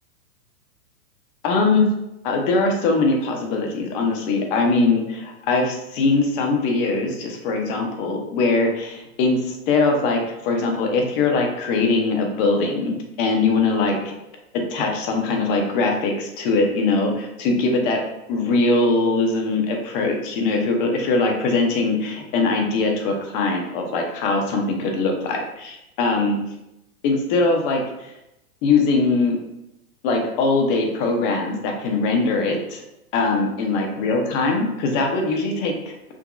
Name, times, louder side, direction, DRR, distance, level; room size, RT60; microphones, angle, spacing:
voice 1, 1.4-1.9 2.2-14.1 14.7-18.0 18.3-26.4 27.0-28.1 28.6-29.4 30.0-32.8 33.1-35.7, left 3 dB, 35° left, 2 dB, 0.8 m, -21 dB
6.0 x 2.7 x 2.4 m, 0.88 s
hypercardioid pair, 140°, 44 cm